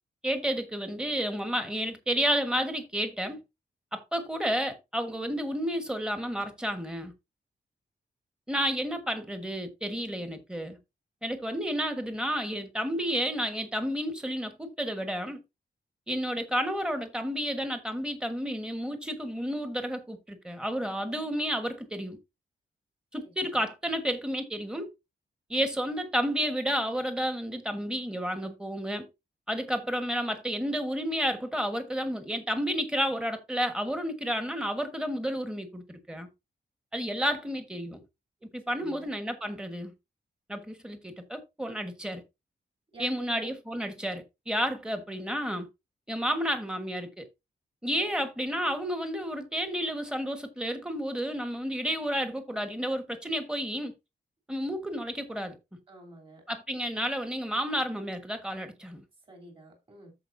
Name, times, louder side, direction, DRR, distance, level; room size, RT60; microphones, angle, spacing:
voice 1, 0.2-3.4 3.9-7.1 8.5-10.8 11.2-15.4 16.1-22.2 23.1-24.9 25.5-29.1 29.5-36.3 36.9-38.0 38.5-39.9 40.5-42.2 43.0-45.7 46.1-47.3 47.8-53.9 54.5-55.6 56.5-59.0, equal, 5° right, 1.3 m, -31 dB
voice 2, 23.2-23.7 38.7-39.1 42.9-43.5 55.9-56.4 59.3-60.1, right 2 dB, 30° right, 3.2 m, -49 dB
13.5 x 4.9 x 2.6 m
wide cardioid pair, 180°, 17 cm